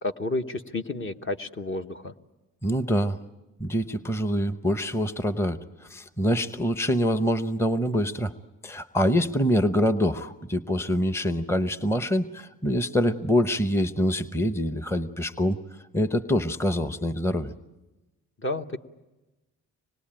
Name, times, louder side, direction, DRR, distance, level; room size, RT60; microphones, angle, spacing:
voice 1, 0.0-2.1 18.4-18.8, left 2 dB, 40° left, 7 dB, 1.2 m, -31 dB
voice 2, 2.6-3.2 3.6-5.6 5.9-8.3 8.6-15.6 15.9-17.5, equal, 10° left, 11 dB, 0.9 m, -25 dB
25.5 x 20.5 x 8.9 m, 1.1 s
cardioid pair, 80°, 32 cm